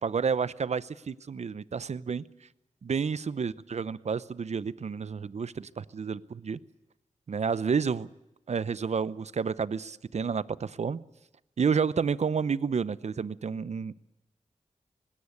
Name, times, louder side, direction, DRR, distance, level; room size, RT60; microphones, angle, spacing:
voice 1, 0.0-2.2 2.8-6.6 7.3-8.1 8.5-11.0 11.6-13.9, right 6 dB, 60° right, 18 dB, 0.7 m, -30 dB
19.5 x 17.0 x 9.6 m, 0.95 s
wide cardioid pair, 70°, 13 cm